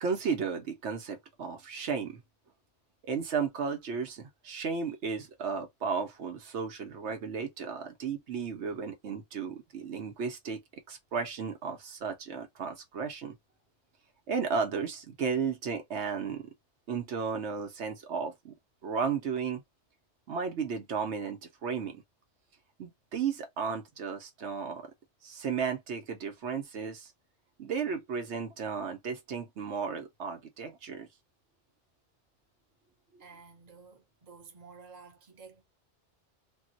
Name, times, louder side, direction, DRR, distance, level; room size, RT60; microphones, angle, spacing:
voice 1, 0.0-2.2 3.1-10.6 10.9-13.3 14.3-16.5 16.9-18.5 18.8-19.6 20.3-22.0 22.8-24.9 25.2-27.1 27.6-31.1, right 5 dB, 75° right, 1.0 m, -34 dB
voice 2, 33.2-35.6, right 5 dB, 40° right, 0.9 m, -52 dB
3.5 x 2.1 x 2.6 m
omnidirectional pair, 1.2 m